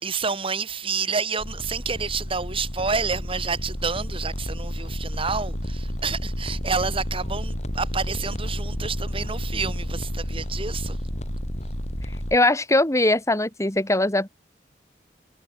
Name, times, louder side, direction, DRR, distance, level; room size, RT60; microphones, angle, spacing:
voice 1, 0.0-11.0, right 5 dB, 30° right, 1.9 m, -29 dB
sound 1, 1.4-12.4, equal, 40° left, 7.4 m, -31 dB
voice 2, 12.3-14.3, left 2 dB, 15° left, 2.6 m, -21 dB
head